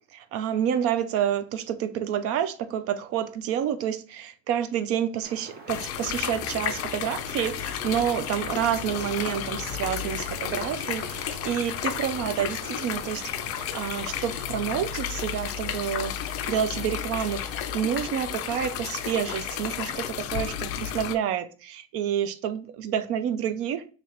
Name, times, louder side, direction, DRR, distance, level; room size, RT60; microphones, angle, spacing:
voice 1, 0.0-13.3 13.6-16.2 16.5-23.9, right 9 dB, 45° right, 0.4 m, -29 dB
Wind, 5.2-20.1, right 3 dB, 30° right, 0.8 m, -45 dB
sound 1, 5.7-21.1, left 10 dB, 45° left, 0.4 m, -32 dB
2.9 x 2.8 x 4.5 m
cardioid pair, 135°, 33 cm